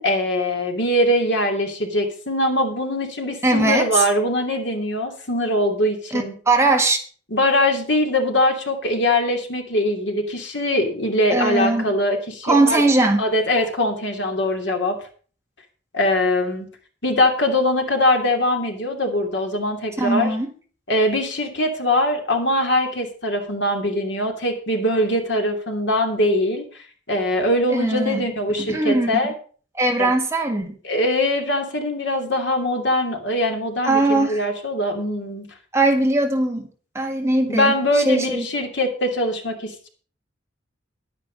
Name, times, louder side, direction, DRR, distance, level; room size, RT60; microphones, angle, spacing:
voice 1, 0.0-6.3 7.3-12.8 13.2-15.0 15.9-16.7 17.0-20.3 20.9-26.6 27.1-29.3 30.0-30.1 30.8-35.4 37.5-39.9, left 1 dB, 60° left, 3 dB, 2.8 m, -22 dB
voice 2, 3.4-4.0 6.1-7.0 11.3-11.9 12.4-13.3 20.0-20.5 27.7-28.3 28.6-29.1 29.7-30.8 33.8-34.4 35.7-36.7 37.0-38.5, right 2 dB, 15° right, 2 dB, 1.7 m, -20 dB
11.0 x 10.0 x 5.2 m, 0.41 s
head